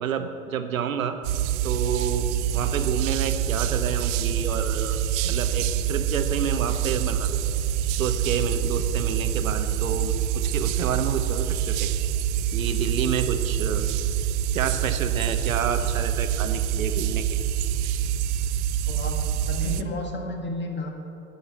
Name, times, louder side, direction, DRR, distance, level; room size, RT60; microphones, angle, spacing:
voice 1, 0.0-1.2 1.6-5.0 5.2-7.4 8.0-11.9 12.5-13.9 14.5-17.5, right 7 dB, 85° right, 9 dB, 0.8 m, -29 dB
sound 1, 1.2-19.8, right 10 dB, 60° right, 0.5 m, -26 dB
voice 2, 18.9-20.9, left 2 dB, 25° left, 2 dB, 1.8 m, -32 dB
11.0 x 5.4 x 6.9 m, 2.8 s
hypercardioid pair, 80°, 40 cm